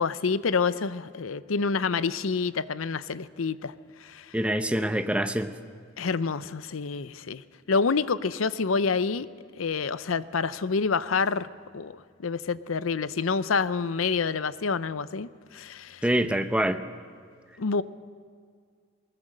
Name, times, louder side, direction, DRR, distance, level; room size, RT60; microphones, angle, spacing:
voice 1, 0.0-3.7 4.0-4.3 6.0-9.3 9.6-11.5 11.7-16.0 17.6-17.8, left 5 dB, 85° left, 15 dB, 0.6 m, -28 dB
voice 2, 4.3-5.5 16.0-16.8, right 1 dB, 5° right, 8 dB, 0.7 m, -25 dB
20.5 x 19.5 x 6.6 m, 2.1 s
head